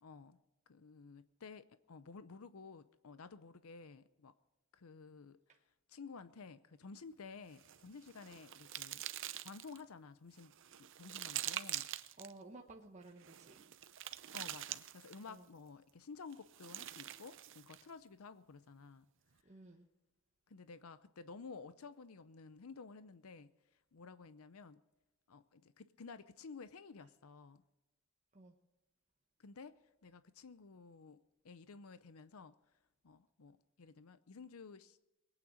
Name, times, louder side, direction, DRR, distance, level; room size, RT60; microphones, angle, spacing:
voice 1, 0.0-0.4 0.7-4.3 4.7-5.4 5.9-9.1 9.4-10.5 10.8-11.9 14.3-19.1 20.5-23.5 23.9-24.8 25.3-27.6 29.4-32.5 33.0-35.0, left 4 dB, 85° left, 13 dB, 0.6 m, -53 dB
sound 1, 7.5-9.8 10.4-12.3 13.2-15.3 16.3-17.9, right 13 dB, 60° right, 0.7 m, -45 dB
voice 2, 12.2-13.6 15.3-15.4 19.4-19.9 28.3-28.5, right 2 dB, 35° right, 1 dB, 1.1 m, -54 dB
21.5 x 8.9 x 6.4 m, 1.0 s
head